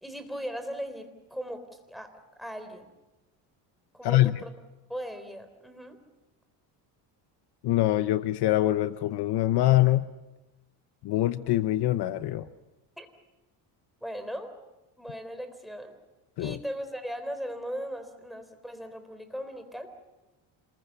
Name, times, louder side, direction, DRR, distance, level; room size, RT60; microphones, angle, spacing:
voice 1, 0.0-2.9 3.9-4.5 4.9-6.0 13.0-13.1 14.0-14.5 15.0-16.0 16.4-19.9, equal, ahead, 9 dB, 3.7 m, -38 dB
voice 2, 4.0-4.4 7.6-10.1 11.0-12.5 16.4-16.6, left 15 dB, 60° left, 12 dB, 0.9 m, -24 dB
27.0 x 21.5 x 7.1 m, 1.0 s
cardioid pair, 120°, 45 cm